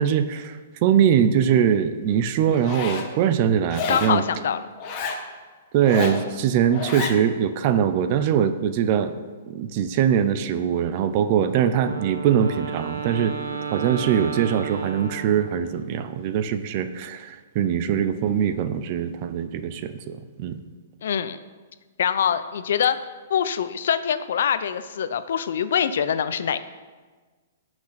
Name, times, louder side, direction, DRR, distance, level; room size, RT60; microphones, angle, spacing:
voice 1, 0.0-4.2 5.7-9.1 9.5-13.3 13.7-20.6, right 8 dB, 35° right, 11 dB, 0.7 m, -22 dB
Zipper (clothing), 2.5-3.1 3.7-4.2 4.8-5.2 5.8-6.2 6.7-7.2, left 4 dB, 30° left, 1.5 m, -30 dB
voice 2, 3.9-4.6 21.0-21.4 22.0-23.0 23.3-26.6, left 8 dB, 65° left, 12 dB, 0.7 m, -24 dB
Wind instrument woodwind instrument, 11.7-15.8, right 6 dB, 90° right, 1.2 m, -33 dB
17.0 x 6.2 x 5.9 m, 1.4 s
hypercardioid pair, 165°, 0 cm